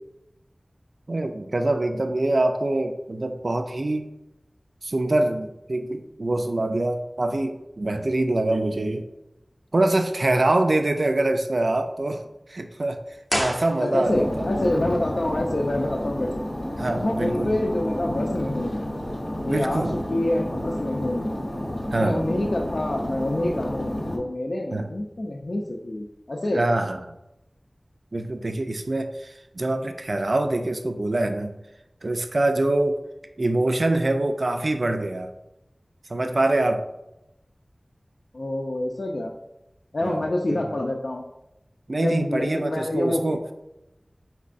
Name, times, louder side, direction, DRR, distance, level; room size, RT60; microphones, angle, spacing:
voice 1, 1.1-4.1 4.8-9.1 9.7-12.2 12.5-13.0 13.3-14.5 16.8-17.5 19.4-20.1 21.9-22.2 24.7-24.9 26.5-27.0 28.1-31.5 32.0-33.0 33.4-35.3 36.1-36.9 40.0-40.6 41.9-43.4, right 2 dB, 70° right, 6 dB, 0.3 m, -24 dB
sound 1, 13.3-14.4 14.6-14.7, equal, 15° left, 0.5 m, -29 dB
voice 2, 13.8-16.3 16.8-18.8 19.4-21.4 22.0-26.6 38.3-39.3 39.9-41.2 42.0-43.2, left 1 dB, 70° left, -1 dB, 0.4 m, -27 dB
sound 2, 14.0-24.2, left 1 dB, 90° left, 0.9 m, -30 dB
4.5 x 4.1 x 2.5 m, 0.91 s
wide cardioid pair, 55°, 0 cm